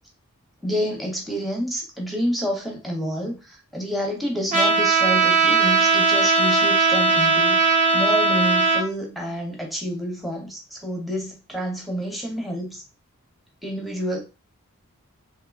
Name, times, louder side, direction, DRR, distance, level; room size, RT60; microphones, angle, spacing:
voice 1, 0.6-12.8 13.6-14.2, equal, ahead, 0.7 m, -28 dB
Trumpet, 4.5-8.8, right 4 dB, 35° right, 0.7 m, -18 dB
3.5 x 2.8 x 2.3 m
head